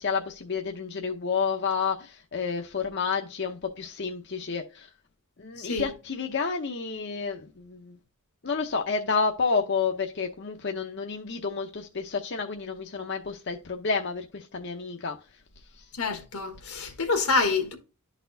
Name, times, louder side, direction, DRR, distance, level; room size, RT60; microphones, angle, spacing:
voice 1, 0.0-4.9 5.4-8.0 8.4-15.2 15.7-15.9, left 5 dB, 50° left, 0.7 m, -30 dB
voice 2, 5.6-5.9 15.9-17.7, left 3 dB, 85° left, 1.5 m, -27 dB
12.0 x 4.1 x 2.6 m
head